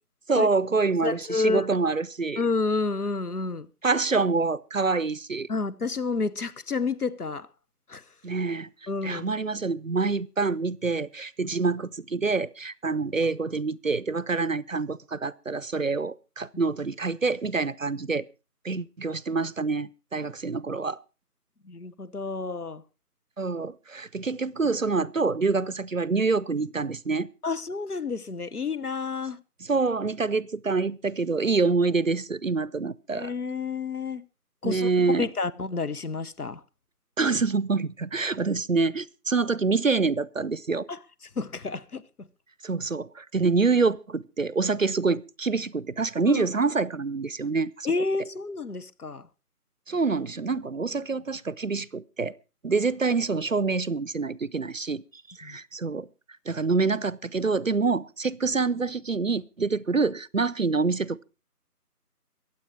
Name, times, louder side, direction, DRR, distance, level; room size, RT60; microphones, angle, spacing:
voice 1, 0.3-2.4 3.8-5.5 8.2-8.7 9.0-18.3 18.6-21.0 23.4-27.3 29.6-33.3 34.6-35.3 37.2-40.9 42.6-47.9 49.9-52.3 52.6-56.1 56.5-61.2, right 4 dB, 55° right, 0.6 m, -26 dB
voice 2, 1.0-1.7 2.4-3.7 5.5-7.5 7.9-8.0 8.9-9.2 11.4-11.5 21.6-22.8 27.4-29.4 33.1-34.3 34.6-34.9 35.2-36.6 40.9-41.0 41.4-42.3 46.3-46.5 47.8-49.3 55.4-55.6, left 4 dB, 70° left, 1.1 m, -30 dB
23.0 x 8.1 x 4.7 m
figure-of-eight pair, 170°, 47 cm